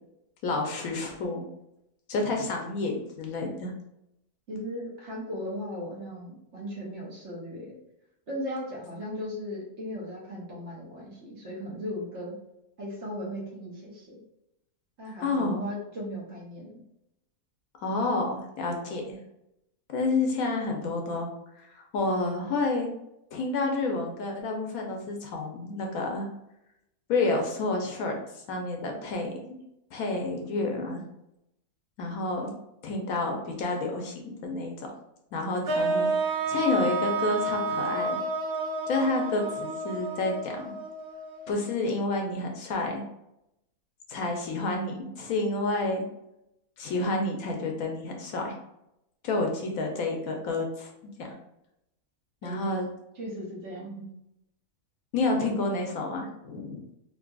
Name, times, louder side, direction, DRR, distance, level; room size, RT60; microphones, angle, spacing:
voice 1, 0.4-1.5 2.1-3.7 15.2-15.6 17.8-19.2 19.9-22.9 23.3-26.3 27.1-28.2 28.5-29.4 29.9-31.0 32.0-32.5 32.8-34.9 35.3-38.2 38.9-40.7 41.5-43.0 44.1-46.0 46.8-48.5 49.2-50.9 51.2-51.3 52.4-52.9 55.1-56.8, left 2 dB, 70° left, 2 dB, 1.0 m, -29 dB
voice 2, 4.5-7.8 8.3-12.3 12.8-14.2 15.0-16.7 52.4-52.7 53.2-54.0, equal, 50° right, -4 dB, 1.2 m, -37 dB
sound 1, 35.7-41.7, right 2 dB, 85° right, 0.5 m, -30 dB
3.8 x 2.7 x 2.3 m, 0.84 s
omnidirectional pair, 1.6 m